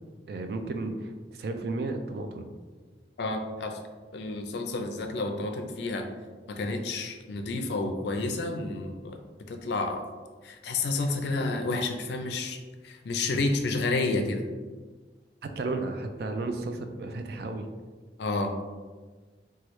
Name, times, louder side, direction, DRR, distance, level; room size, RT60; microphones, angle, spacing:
voice 1, 0.3-2.5 15.6-17.7, right 2 dB, 60° right, 6 dB, 0.3 m, -33 dB
voice 2, 3.2-3.8 4.1-6.1 6.5-9.2 9.5-10.1 10.4-12.6 12.8-14.4 18.2-18.5, left 3 dB, 75° left, 5 dB, 0.4 m, -30 dB
3.0 x 2.3 x 3.0 m, 1.4 s
head